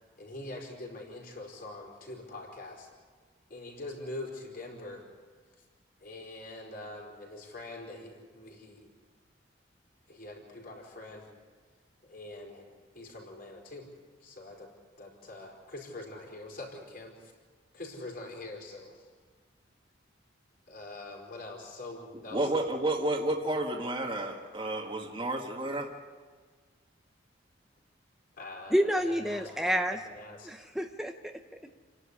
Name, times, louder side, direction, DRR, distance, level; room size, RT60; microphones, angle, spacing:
voice 1, 0.2-2.9 3.5-5.0 6.0-8.9 10.1-11.3 12.1-12.7 12.9-13.9 14.2-14.7 15.0-17.3 17.7-19.0 20.7-22.5 28.4-30.5, left 2 dB, 50° left, 0 dB, 4.7 m, -44 dB
voice 2, 22.3-25.9, right 1 dB, 25° right, -1 dB, 1.8 m, -31 dB
voice 3, 28.7-30.0 30.4-31.7, equal, ahead, 5 dB, 0.8 m, -29 dB
29.0 x 11.5 x 9.8 m, 1.5 s
head